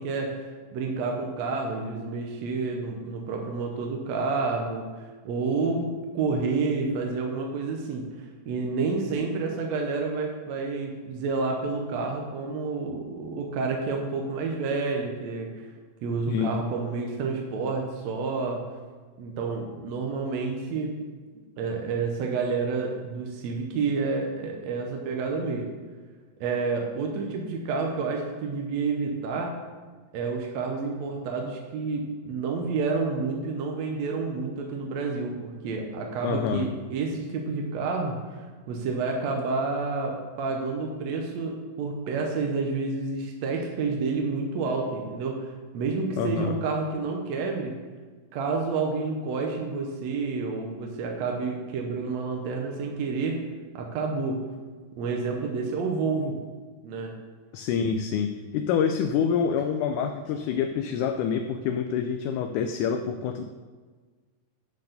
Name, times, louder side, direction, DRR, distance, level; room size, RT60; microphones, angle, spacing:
voice 1, 0.0-5.9 6.1-15.7 16.0-18.6 19.2-20.9 21.6-25.6 26.4-29.5 30.1-47.8 48.3-53.4 53.7-54.5 55.0-56.4 56.8-57.1, right 4 dB, 70° right, 1 dB, 1.8 m, -29 dB
voice 2, 36.2-36.7 46.2-46.6 57.5-63.4, left 7 dB, 80° left, 7 dB, 1.8 m, -27 dB
9.6 x 4.7 x 6.5 m, 1.5 s
omnidirectional pair, 3.9 m